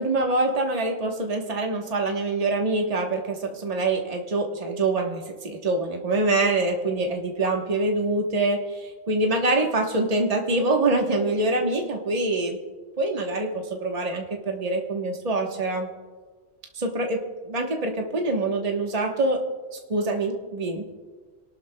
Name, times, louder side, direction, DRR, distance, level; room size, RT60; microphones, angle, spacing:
voice 1, 0.0-8.6 9.1-12.6 13.0-15.9 16.7-19.4 19.9-20.9, right 2 dB, 35° right, 1 dB, 1.2 m, -25 dB
26.5 x 12.0 x 2.2 m, 1.4 s
omnidirectional pair, 1.2 m